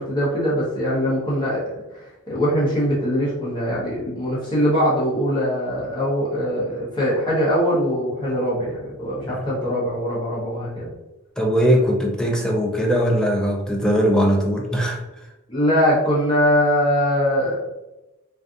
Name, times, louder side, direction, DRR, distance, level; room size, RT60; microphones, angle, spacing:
voice 1, 0.0-1.6 1.9-10.9 15.5-17.6, equal, 20° left, -8 dB, 0.8 m, -22 dB
voice 2, 11.4-15.0, equal, 5° left, 0 dB, 0.3 m, -20 dB
2.5 x 2.4 x 2.4 m, 0.98 s
head